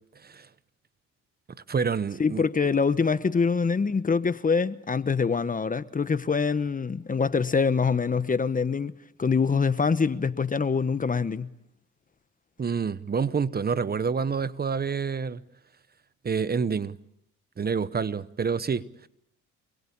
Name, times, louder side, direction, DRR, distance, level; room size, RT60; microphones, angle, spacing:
voice 1, 1.7-2.5 12.6-15.4 16.2-17.0 17.6-19.1, right 5 dB, 30° right, 1.0 m, -28 dB
voice 2, 2.2-8.9 9.2-11.5, left 5 dB, 25° left, 1.1 m, -24 dB
28.0 x 21.0 x 8.7 m
cardioid pair, 90°, 31 cm